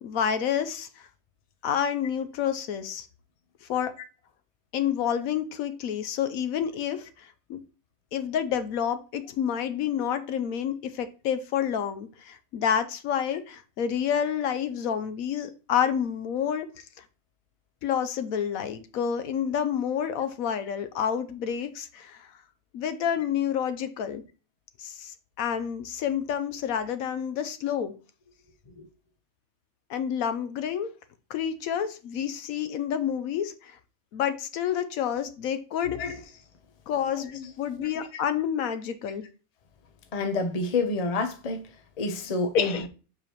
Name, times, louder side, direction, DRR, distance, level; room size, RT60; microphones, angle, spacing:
voice 1, 0.0-0.9 1.6-3.1 3.7-3.9 4.7-7.1 7.5-7.6 8.1-16.7 17.8-22.3 22.7-24.2 24.8-25.1 25.4-27.9 29.9-30.9 31.3-33.7 34.1-36.0 36.9-37.3 37.6-39.2 42.5-42.9, left 8 dB, 75° left, 1.0 m, -29 dB
voice 2, 37.2-38.2 40.1-42.9, left 3 dB, 35° left, 0.7 m, -30 dB
6.8 x 4.7 x 2.9 m
omnidirectional pair, 1.5 m